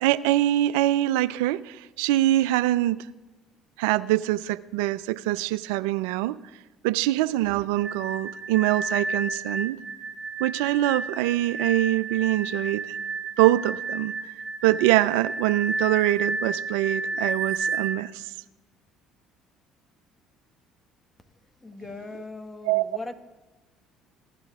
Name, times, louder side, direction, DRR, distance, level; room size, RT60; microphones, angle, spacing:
voice 1, 0.0-3.0 3.8-6.3 6.8-9.8 10.4-13.0 13.4-14.3 14.6-18.2 22.7-22.8, right 15 dB, 80° right, 0.3 m, -24 dB
sound 1, 7.8-18.0, right 3 dB, 45° right, 0.8 m, -31 dB
voice 2, 21.6-23.1, left 3 dB, 20° left, 1.1 m, -39 dB
15.5 x 11.0 x 3.6 m
hypercardioid pair, 65°, 0 cm